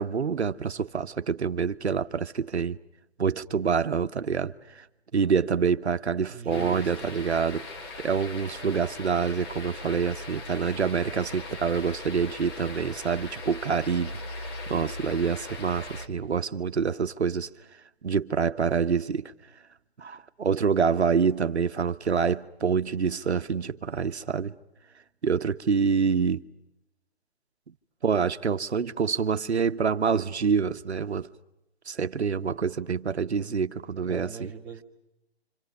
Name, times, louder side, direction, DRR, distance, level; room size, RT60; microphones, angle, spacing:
voice 1, 0.0-2.8 3.2-4.9 5.1-7.7 8.0-17.5 18.0-19.3 20.0-24.5 25.2-26.4 28.0-31.3 31.9-34.5, right 6 dB, 85° right, 1.3 m, -26 dB
voice 2, 6.3-6.9 34.1-34.8, right 6 dB, 5° right, 2.1 m, -38 dB
sound 1, 6.5-16.1, left 2 dB, 25° left, 1.8 m, -39 dB
28.5 x 27.0 x 6.7 m
hypercardioid pair, 160°, 32 cm